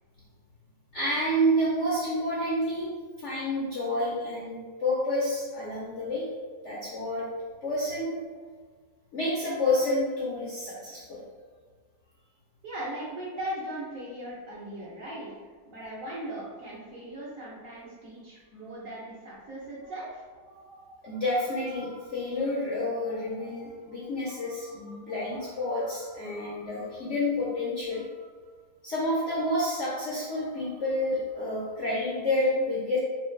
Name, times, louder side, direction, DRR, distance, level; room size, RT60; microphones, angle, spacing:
voice 1, 0.9-6.3 6.6-7.3 7.6-8.2 9.1-11.2 20.5-28.1 28.8-33.0, left 1 dB, 70° left, -6 dB, 0.7 m, -29 dB
voice 2, 12.6-20.2, right 1 dB, 60° right, -6 dB, 0.9 m, -38 dB
3.2 x 3.0 x 3.1 m, 1.5 s
omnidirectional pair, 2.1 m